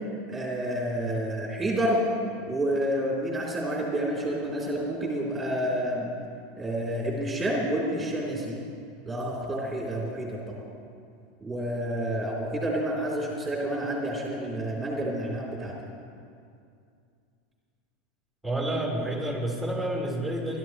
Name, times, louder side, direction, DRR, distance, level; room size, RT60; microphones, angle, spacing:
voice 1, 0.3-2.0 2.5-6.1 6.6-8.6 9.0-10.6 11.4-15.7, right 1 dB, 15° right, -4 dB, 3.4 m, -29 dB
voice 2, 18.4-20.6, right 1 dB, 5° left, -1 dB, 4.2 m, -29 dB
23.0 x 12.0 x 3.2 m, 2.4 s
hypercardioid pair, 95°, 0 cm